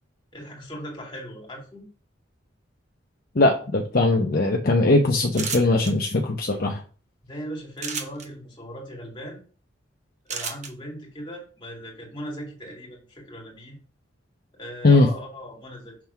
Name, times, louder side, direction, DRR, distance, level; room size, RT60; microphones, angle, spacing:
voice 1, 0.3-1.9 7.2-9.4 10.2-13.8 14.5-16.1, equal, 25° left, -1 dB, 2.5 m, -38 dB
voice 2, 3.3-6.8 14.8-15.1, left 2 dB, 55° left, 1 dB, 0.8 m, -20 dB
sound 1, 5.3-5.9 7.8-8.3 10.3-10.7, right 6 dB, 40° right, 1.0 m, -31 dB
6.0 x 3.6 x 5.8 m, 0.38 s
head